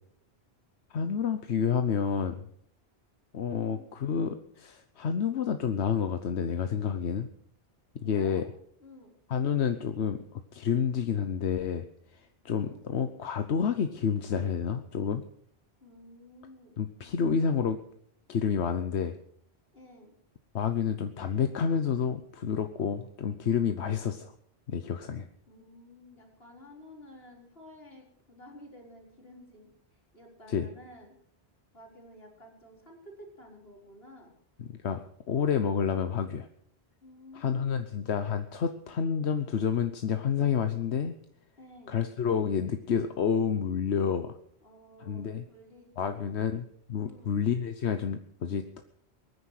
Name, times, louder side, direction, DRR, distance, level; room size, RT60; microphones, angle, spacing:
voice 1, 0.9-2.4 3.3-7.3 7.9-8.4 9.3-11.9 12.1-15.2 16.8-17.8 18.3-19.1 20.5-24.3 24.7-25.3 30.5-30.7 34.6-36.5 37.3-41.1 41.9-44.4 45.1-45.4 46.0-48.8, left 7 dB, 90° left, 8 dB, 1.2 m, -29 dB
voice 2, 3.6-3.9 8.0-8.5 8.8-9.1 12.6-12.8 15.8-16.8 17.0-17.4 19.7-20.1 25.5-29.7 30.1-31.1 31.7-34.3 37.0-37.9 41.6-42.0 44.6-46.3 47.0-47.3, left 1 dB, 65° left, 0 dB, 4.5 m, -52 dB
22.5 x 9.9 x 6.5 m, 0.67 s
omnidirectional pair, 1.1 m